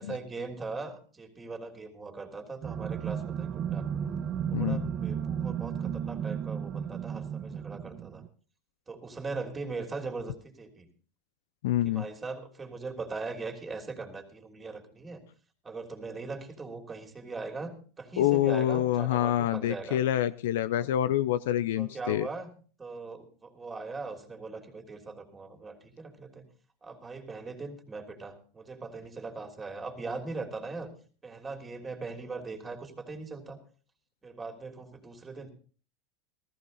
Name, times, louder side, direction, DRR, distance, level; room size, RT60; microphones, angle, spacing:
voice 1, 0.0-3.9 4.5-8.2 8.9-10.9 11.8-15.2 15.6-20.0 20.8-20.9 21.8-22.5 22.8-26.4 26.8-30.9 31.2-33.6 34.2-35.5, right 3 dB, 20° right, 4 dB, 3.2 m, -40 dB
sound 1, 2.6-8.3, right 8 dB, 40° right, 1.0 m, -33 dB
voice 2, 4.5-4.9 11.6-12.1 18.2-22.3, left 12 dB, 80° left, 15 dB, 0.6 m, -27 dB
15.0 x 14.0 x 4.0 m, 0.40 s
hypercardioid pair, 100°, 0 cm